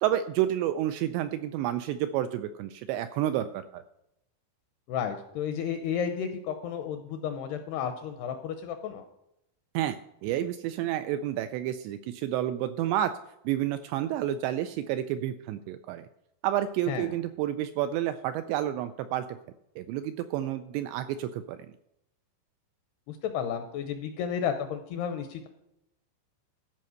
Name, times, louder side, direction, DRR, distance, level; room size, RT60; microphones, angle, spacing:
voice 1, 0.0-3.8 9.7-10.0 10.2-13.1 13.5-16.1 16.4-19.3 19.8-21.6, right 12 dB, 85° right, 9 dB, 2.5 m, -30 dB
voice 2, 4.9-9.0 16.9-17.2 23.1-25.5, left 8 dB, 80° left, 7 dB, 2.4 m, -32 dB
13.5 x 5.3 x 6.3 m, 0.81 s
omnidirectional pair, 5.4 m